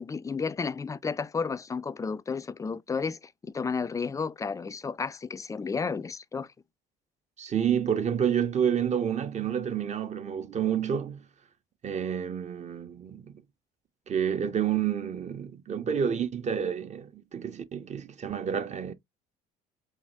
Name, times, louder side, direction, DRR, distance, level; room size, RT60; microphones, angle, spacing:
voice 1, 0.0-6.5, left 5 dB, 15° left, 0.3 m, -32 dB
voice 2, 7.4-11.2 11.8-13.3 14.1-18.9, right 8 dB, 35° right, 0.6 m, -29 dB
4.8 x 2.3 x 2.6 m
hypercardioid pair, 65°, 20 cm